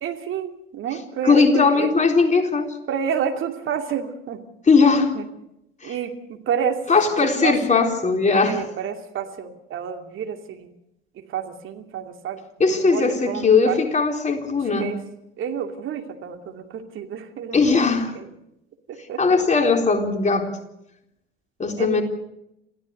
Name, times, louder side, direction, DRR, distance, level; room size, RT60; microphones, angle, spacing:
voice 1, 0.0-1.9 2.9-4.4 5.1-5.2 5.8-6.8 7.2-7.8 8.4-10.7 11.2-13.8 14.8-15.0 15.4-17.9 18.9-19.4 21.8-22.0, right 8 dB, 45° right, 4 dB, 2.7 m, -29 dB
voice 2, 1.2-2.7 4.7-5.1 5.8-5.9 6.9-8.6 12.6-14.9 17.5-18.1 19.2-20.5 21.6-22.0, left 4 dB, 25° left, 3 dB, 4.0 m, -19 dB
27.5 x 16.0 x 6.6 m, 0.84 s
figure-of-eight pair, 65°, 29 cm